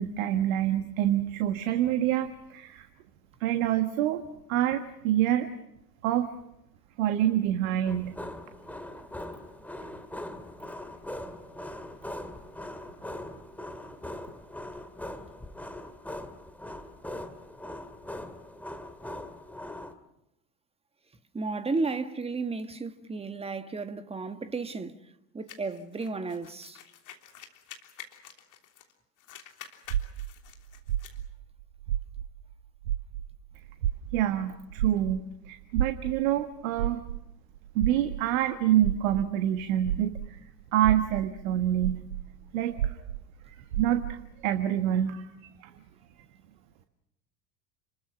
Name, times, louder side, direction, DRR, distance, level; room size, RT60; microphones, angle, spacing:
voice 1, 0.0-2.9 3.4-4.2 4.5-5.5 6.0-6.3 7.0-8.2 34.1-37.0 37.7-40.4 40.7-42.1 42.5-43.1 43.5-45.7, right 11 dB, 55° right, 1.6 m, -27 dB
sound 1, 7.9-19.9, left 1 dB, 5° left, 2.1 m, -41 dB
voice 2, 21.3-25.0 25.3-26.8, right 3 dB, 10° right, 1.6 m, -33 dB
sound 2, 25.5-28.9 29.2-31.2, left 9 dB, 40° left, 3.3 m, -49 dB
sound 3, 29.9-32.5 32.8-40.4 40.8-44.3, right 11 dB, 75° right, 0.9 m, -32 dB
30.0 x 21.5 x 6.2 m
figure-of-eight pair, 75°, 49 cm